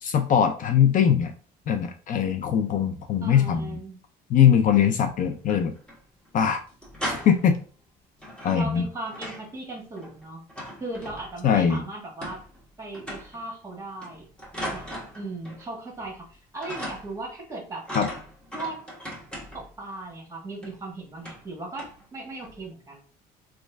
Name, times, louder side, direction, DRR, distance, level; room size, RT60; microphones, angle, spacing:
voice 1, 0.0-1.3 1.7-3.8 4.3-5.7 6.3-6.6 7.0-7.6 8.4-8.9 11.4-11.9 17.9-18.1, left 8 dB, 50° left, 7 dB, 0.4 m, -21 dB
voice 2, 3.2-4.0 8.5-10.4 10.8-12.4 12.8-14.2 14.7-14.9 15.1-17.9 18.5-18.8 19.5-23.0, right 2 dB, 15° right, -1 dB, 1.5 m, -37 dB
sound 1, 5.3-6.0 6.3-6.4 6.7-7.6 8.2-9.5 9.8-11.5 12.2-12.7 12.9-13.4 14.0-15.7 16.0-16.3 16.6-17.3 17.8-19.8 20.6-20.8 21.2-21.5 21.8-22.0 22.4-22.7, equal, 5° left, 1.2 m, -38 dB
3.1 x 2.4 x 3.4 m, 0.40 s
cardioid pair, 110°, 17 cm